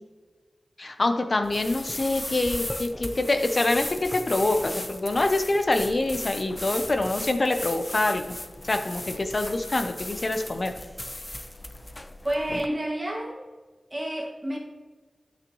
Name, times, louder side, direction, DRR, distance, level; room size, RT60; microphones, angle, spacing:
voice 1, 0.8-8.2 8.6-10.7, left 2 dB, 45° left, 7 dB, 0.8 m, -25 dB
sound 1, 1.4-12.7, left 1 dB, 25° left, 0.5 m, -36 dB
voice 2, 12.2-13.4 13.9-14.6, right 1 dB, 20° right, -1 dB, 2.0 m, -29 dB
8.9 x 7.5 x 3.1 m, 1.3 s
wide cardioid pair, 80°, 0 cm